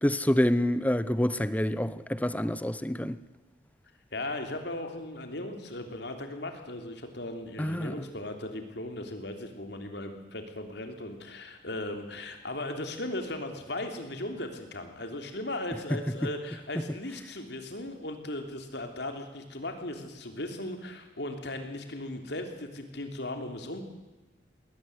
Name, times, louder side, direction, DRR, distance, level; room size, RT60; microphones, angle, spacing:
voice 1, 0.0-3.2 7.6-8.1 15.9-16.3 16.7-16.8, left 1 dB, 10° left, 0.7 m, -27 dB
voice 2, 4.1-23.8, left 1 dB, 65° left, 3.2 m, -37 dB
20.5 x 18.5 x 7.9 m
head